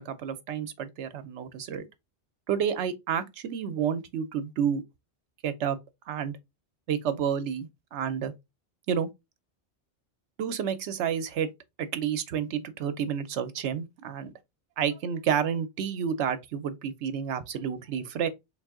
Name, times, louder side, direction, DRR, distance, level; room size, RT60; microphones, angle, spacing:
voice 1, 0.0-1.8 2.5-4.8 5.4-5.8 6.1-6.4 6.9-8.3 8.9-9.1 10.4-11.5 11.8-14.3 14.8-18.3, right 8 dB, 85° right, 0.9 m, -30 dB
3.5 x 2.6 x 3.6 m
omnidirectional pair, 1.1 m